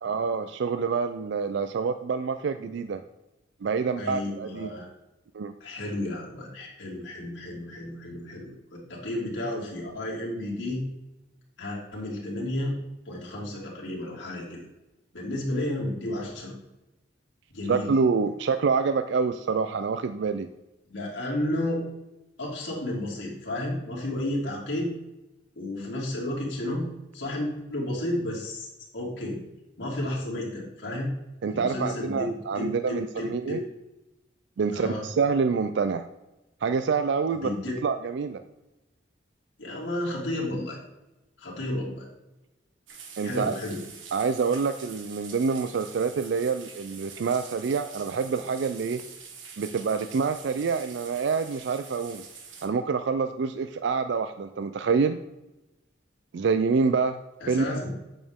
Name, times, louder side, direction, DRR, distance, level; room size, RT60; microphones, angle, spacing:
voice 1, 0.0-3.0 3.6-4.7 5.3-5.5 17.7-20.5 31.4-33.6 34.6-36.1 36.6-37.5 37.8-38.4 43.2-43.6 44.1-49.0 49.6-52.2 52.6-55.2 56.3-57.2 57.5-57.7, right 5 dB, 65° right, 10 dB, 0.4 m, -26 dB
voice 2, 4.0-4.9 5.6-10.8 11.6-12.8 13.1-14.6 15.1-16.5 17.5-17.9 20.9-21.8 22.4-24.9 25.6-26.9 27.1-28.7 28.9-29.4 29.8-31.1 31.5-33.6 34.7-35.0 37.4-37.8 39.6-40.8 41.4-42.1 43.2-43.8 57.4-57.9, left 1 dB, 75° left, -4 dB, 2.5 m, -32 dB
sound 1, 42.9-52.7, right 5 dB, 85° right, 1.4 m, -45 dB
8.9 x 6.5 x 3.5 m, 0.99 s
head